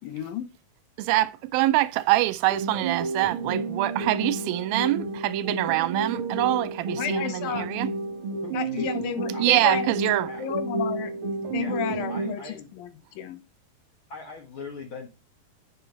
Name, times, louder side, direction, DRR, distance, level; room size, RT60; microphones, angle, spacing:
voice 1, 0.0-0.4 7.0-7.7 8.5-9.9 10.4-11.1 11.5-13.4, left 10 dB, 75° left, 2.7 m, -32 dB
voice 2, 1.0-7.9 9.4-10.3, right 17 dB, 80° right, 2.3 m, -25 dB
sound 1, 2.5-12.5, right 3 dB, 55° right, 1.5 m, -31 dB
voice 3, 8.4-9.0 9.3-9.4 10.1-10.5 11.6-11.8 12.1-12.7 14.1-15.1, left 4 dB, 50° left, 1.7 m, -40 dB
9.0 x 7.4 x 3.1 m
omnidirectional pair, 4.3 m